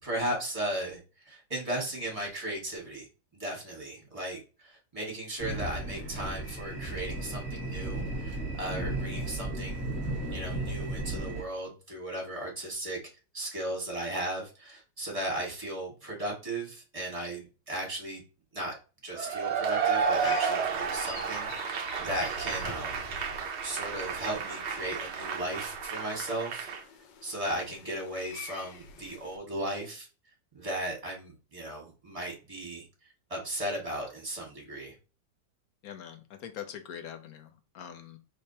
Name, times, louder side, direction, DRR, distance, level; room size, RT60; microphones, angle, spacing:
voice 1, 0.0-1.0 1.3-3.1 3.4-9.9 10.3-13.0 13.3-18.2 18.5-18.7 19.0-23.1 23.6-26.7 27.2-30.1 30.5-32.8 33.3-34.9, right 1 dB, 20° right, -1 dB, 1.6 m, -36 dB
sound 1, 5.4-11.4, right 2 dB, 10° left, 0.9 m, -35 dB
Cheering / Applause / Crowd, 19.2-26.8, right 6 dB, 65° right, 0.7 m, -32 dB
sound 2, 20.0-29.4, left 4 dB, 85° left, 1.4 m, -47 dB
voice 2, 35.8-38.2, left 9 dB, 65° left, 8 dB, 1.0 m, -43 dB
4.8 x 3.4 x 2.8 m, 0.33 s
omnidirectional pair, 1.9 m